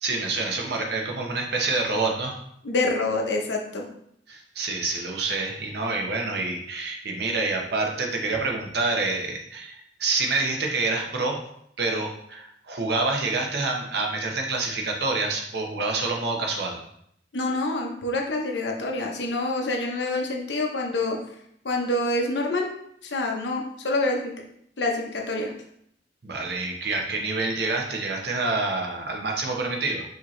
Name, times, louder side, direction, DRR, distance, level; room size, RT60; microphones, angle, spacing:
voice 1, 0.0-2.4 4.3-11.4 11.8-16.8 26.2-30.0, right 3 dB, 65° right, 1 dB, 0.8 m, -27 dB
voice 2, 2.6-3.8 17.3-21.2 21.6-22.7 23.0-24.3 24.8-25.5, left 2 dB, 80° left, 1 dB, 0.8 m, -26 dB
4.9 x 2.9 x 3.1 m, 0.71 s
head